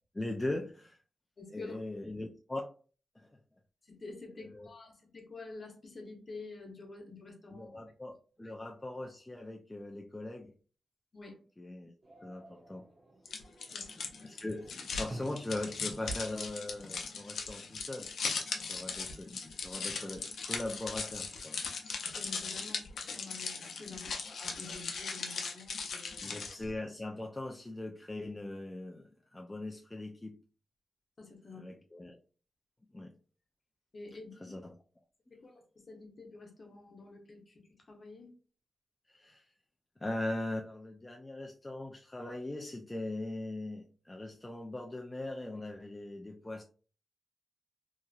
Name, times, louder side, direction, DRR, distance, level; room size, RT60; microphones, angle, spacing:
voice 1, 0.1-1.0 1.5-2.7 3.2-3.3 4.4-4.7 7.5-10.5 11.6-11.9 12.2-12.9 14.2-18.1 18.7-21.6 26.2-30.4 31.5-32.2 32.9-33.1 34.4-34.7 39.1-39.5 40.0-46.6, left 2 dB, 15° left, 0.3 m, -40 dB
voice 2, 1.4-1.8 3.8-7.8 8.4-8.5 11.1-11.4 13.7-14.1 22.1-26.2 31.2-31.7 33.9-34.5 35.3-38.3, left 3 dB, 45° left, 0.9 m, -49 dB
sound 1, 12.0-17.2, right 1 dB, 40° right, 0.6 m, -52 dB
sound 2, 13.3-26.7, left 4 dB, 80° left, 0.5 m, -39 dB
2.8 x 2.4 x 2.3 m
cardioid pair, 90°, 0 cm